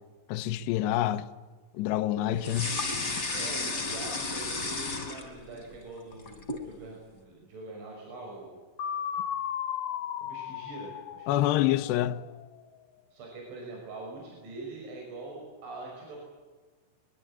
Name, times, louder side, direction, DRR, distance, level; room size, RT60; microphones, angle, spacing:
voice 1, 0.3-1.3 1.8-2.7 11.3-12.2, left 13 dB, 75° left, 2.7 m, -27 dB
voice 2, 2.1-2.5 3.3-8.6 10.2-11.8 13.1-16.2, right 3 dB, 65° right, 8.0 m, -43 dB
sound 1, 2.4-5.6 6.0-6.7, left 3 dB, 25° left, 3.5 m, -33 dB
sound 2, 8.8-12.7, left 9 dB, 60° left, 3.2 m, -36 dB
24.0 x 23.5 x 8.8 m
omnidirectional pair, 5.7 m